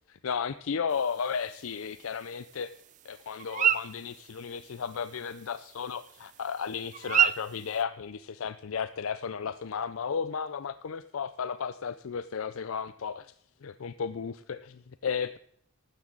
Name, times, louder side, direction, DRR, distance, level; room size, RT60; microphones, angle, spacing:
voice 1, 0.1-2.7 3.0-13.3 13.6-15.4, left 6 dB, 75° left, 14 dB, 0.5 m, -34 dB
sound 1, 0.9-7.8, right 9 dB, 35° right, 0.4 m, -32 dB
15.5 x 12.0 x 3.9 m, 0.68 s
head